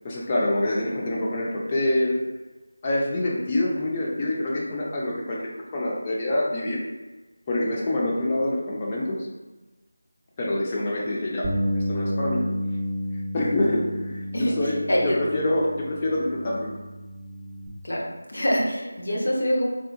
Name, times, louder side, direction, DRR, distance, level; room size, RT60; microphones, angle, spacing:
voice 1, 0.0-2.2 2.8-6.8 7.5-9.3 10.4-12.5 13.3-16.7, left 1 dB, 25° left, -4 dB, 0.5 m, -26 dB
Bass guitar, 11.4-17.7, equal, 25° right, 0.5 m, -31 dB
voice 2, 14.3-15.2 17.8-19.7, equal, 55° left, -2 dB, 0.8 m, -25 dB
3.6 x 2.7 x 2.5 m, 1.2 s
figure-of-eight pair, 165°, 0 cm